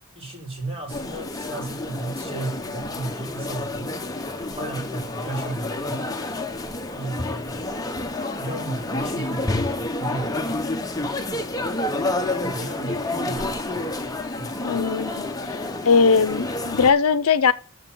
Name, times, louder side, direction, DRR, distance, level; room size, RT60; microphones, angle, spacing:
voice 1, 0.1-3.9 4.5-6.0 6.9-7.6 8.4-10.7 12.4-13.9 14.4-14.8, right 2 dB, 25° right, 2.6 m, -34 dB
sound 1, 0.9-16.9, left 2 dB, 15° left, 0.8 m, -29 dB
voice 2, 14.6-15.3 15.9-17.5, left 5 dB, 75° left, 0.6 m, -19 dB
6.9 x 6.0 x 7.5 m
head